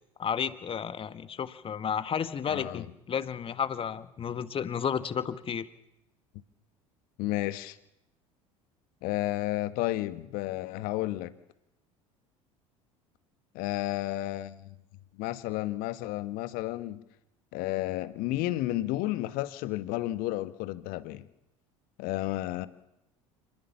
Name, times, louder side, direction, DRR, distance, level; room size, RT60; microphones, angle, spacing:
voice 1, 0.2-5.7, left 7 dB, 30° left, 12 dB, 1.8 m, -32 dB
voice 2, 2.5-2.9 7.2-7.8 9.0-11.3 13.5-14.8 15.1-17.0 17.5-21.3 22.0-22.7, left 16 dB, 55° left, 12 dB, 1.8 m, -32 dB
27.5 x 22.0 x 7.2 m, 0.84 s
figure-of-eight pair, 70°, 17 cm